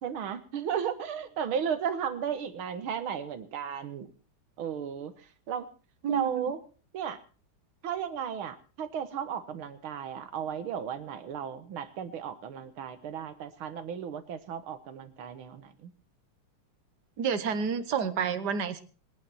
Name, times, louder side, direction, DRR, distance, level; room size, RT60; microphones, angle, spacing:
voice 1, 0.0-4.1 4.6-5.7 6.1-6.6 6.9-7.2 7.8-15.9, right 8 dB, 85° right, 10 dB, 2.2 m, -34 dB
voice 2, 6.0-6.5 17.2-18.8, right 7 dB, 55° right, 11 dB, 1.7 m, -29 dB
26.5 x 9.2 x 4.3 m, 0.38 s
omnidirectional pair, 2.3 m